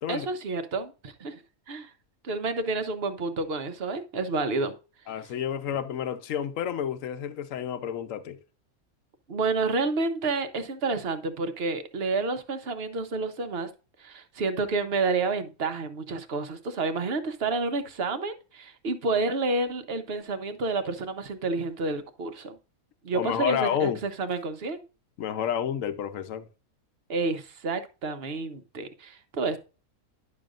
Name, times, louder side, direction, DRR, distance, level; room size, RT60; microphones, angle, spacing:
voice 1, 0.1-1.4 1.7-1.9 2.2-4.7 9.3-13.7 14.0-22.6 23.0-24.8 27.1-29.6, right 3 dB, 50° right, 1.0 m, -29 dB
voice 2, 5.1-8.4 23.1-24.0 25.2-26.5, left 9 dB, 65° left, 1.1 m, -30 dB
10.5 x 6.7 x 2.5 m
omnidirectional pair, 1.5 m